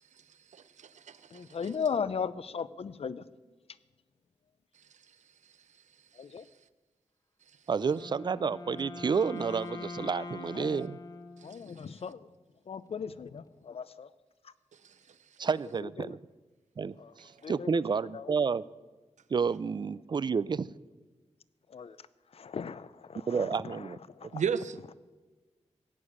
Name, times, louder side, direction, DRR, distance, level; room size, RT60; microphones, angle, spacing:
voice 1, 0.5-1.4 24.3-24.8, right 7 dB, 85° right, 0.6 m, -33 dB
voice 2, 1.3-3.2 6.2-6.5 10.6-10.9 11.4-12.3 12.7-14.1 14.4-14.5 16.0-16.2 17.0-17.1 17.4-17.8 18.1-18.3 21.7-22.0 22.3-23.9 24.2-24.4, left 6 dB, 55° left, 0.6 m, -37 dB
Wind instrument woodwind instrument, 7.7-12.0, left 3 dB, 35° left, 1.0 m, -43 dB
voice 3, 7.7-11.0 15.4-16.2 16.8-18.6 19.3-20.7 23.3-24.3, right 5 dB, 40° right, 0.4 m, -30 dB
17.0 x 8.4 x 8.7 m
wide cardioid pair, 160°, 12 cm